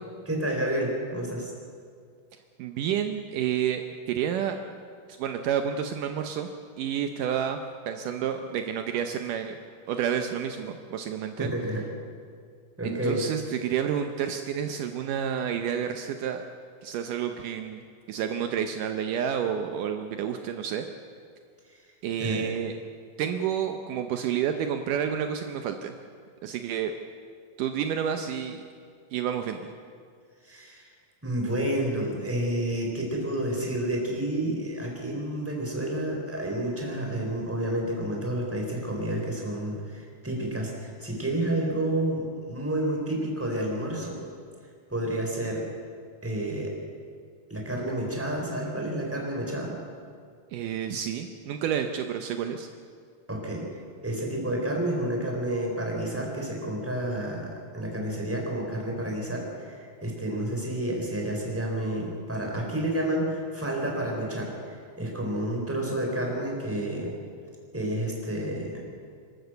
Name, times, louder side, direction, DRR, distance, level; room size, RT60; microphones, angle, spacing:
voice 1, 0.3-1.5 11.4-11.8 12.8-13.2 22.2-22.5 30.4-30.9 31.2-44.2 44.9-45.6 46.2-46.7 47.5-49.8 53.3-53.7 54.0-67.1 67.7-68.8, right 1 dB, 5° right, -1 dB, 3.9 m, -30 dB
voice 2, 2.6-3.8 4.1-4.6 5.2-6.5 6.8-7.6 7.9-9.6 9.9-11.5 12.8-16.4 16.8-17.8 18.1-20.9 22.0-22.7 23.2-25.9 26.4-26.9 27.6-28.6 29.1-29.7 50.5-52.7, right 8 dB, 75° right, 6 dB, 2.3 m, -29 dB
26.0 x 12.5 x 8.1 m, 2.1 s
omnidirectional pair, 4.0 m